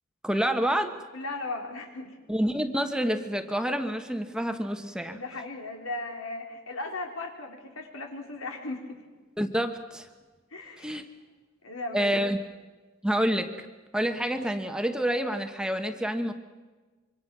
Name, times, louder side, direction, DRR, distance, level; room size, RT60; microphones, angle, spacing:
voice 1, 0.2-0.9 2.3-5.2 9.4-10.1 10.8-11.0 11.9-12.4 13.0-13.7 13.9-16.3, equal, 5° right, 6 dB, 1.2 m, -28 dB
voice 2, 1.1-2.2 4.9-9.0 10.5-11.0 11.6-12.1, left 2 dB, 90° left, 3 dB, 3.6 m, -37 dB
26.0 x 24.5 x 6.1 m, 1.3 s
head